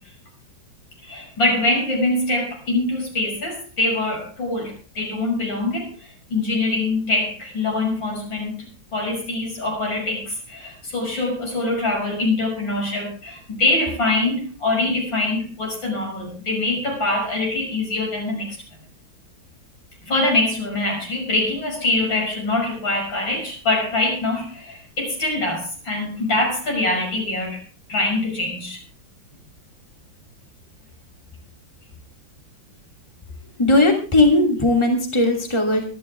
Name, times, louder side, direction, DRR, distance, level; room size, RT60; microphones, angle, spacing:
voice 1, 1.1-5.9 6.3-8.6 8.9-18.6 20.1-27.6 27.9-28.8, left 2 dB, 75° left, 0 dB, 6.8 m, -24 dB
voice 2, 33.6-35.9, left 2 dB, 15° left, 2 dB, 2.9 m, -18 dB
24.5 x 11.5 x 3.5 m, 0.35 s
omnidirectional pair, 2.1 m